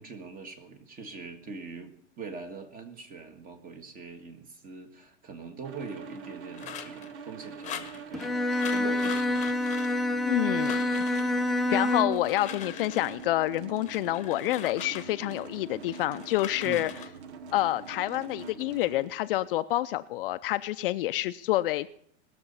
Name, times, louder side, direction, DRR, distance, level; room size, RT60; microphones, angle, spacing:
voice 1, 0.0-9.6 16.6-16.9, right 4 dB, 25° right, 7 dB, 1.6 m, -43 dB
sound 1, 5.6-19.1, right 4 dB, 70° right, 1.2 m, -44 dB
sound 2, 6.6-7.1 7.6-8.3 8.6-10.3 10.6-11.3 12.0-13.3 13.8-15.5 15.9-17.1, left 9 dB, 20° left, 1.1 m, -42 dB
Bowed string instrument, 8.1-12.3, left 2 dB, ahead, 0.5 m, -27 dB
voice 2, 10.3-11.0 11.7-16.9 17.5-21.9, left 15 dB, 50° left, 12 dB, 0.5 m, -28 dB
20.0 x 6.9 x 5.5 m, 0.68 s
hypercardioid pair, 130°, 35 cm